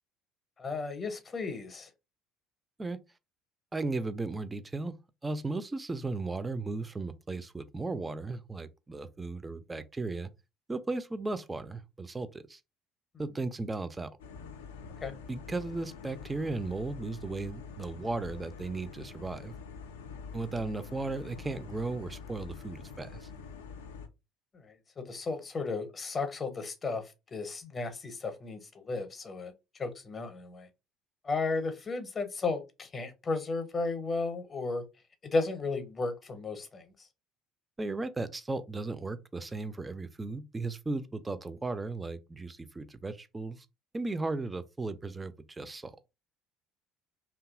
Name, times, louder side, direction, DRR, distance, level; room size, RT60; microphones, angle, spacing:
voice 1, 0.6-1.9 15.0-15.1 24.5-29.5 29.8-30.7 31.2-34.8 35.2-36.8, left 3 dB, 30° left, 0.6 m, -34 dB
voice 2, 3.7-5.0 5.2-10.3 10.7-12.6 13.2-14.1 15.3-19.5 20.3-23.3 37.8-43.7 43.9-45.9, right 3 dB, 20° right, 0.3 m, -36 dB
sound 1, 14.2-24.1, left 6 dB, 70° left, 0.3 m, -46 dB
2.7 x 2.2 x 2.4 m
figure-of-eight pair, 55°, 0 cm